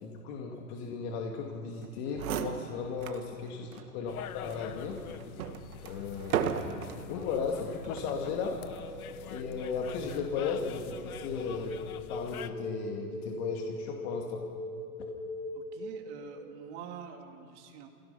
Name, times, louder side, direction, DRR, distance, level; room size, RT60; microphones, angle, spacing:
voice 1, 0.0-5.0 5.8-8.6 9.3-11.7 12.1-14.4, left 5 dB, 45° left, 1 dB, 2.3 m, -36 dB
sound 1, 1.8-1.9 2.1-3.3 3.7-3.8 4.5-7.1 7.8-8.2, right 8 dB, 65° right, 1.6 m, -35 dB
sound 2, 4.1-12.5, left 10 dB, 70° left, 1.1 m, -46 dB
sound 3, 6.9-16.6, equal, ahead, 3.6 m, -42 dB
voice 2, 15.5-17.9, right 8 dB, 45° right, 3 dB, 2.8 m, -46 dB
27.5 x 17.0 x 5.8 m, 2.2 s
hypercardioid pair, 125°, 45 cm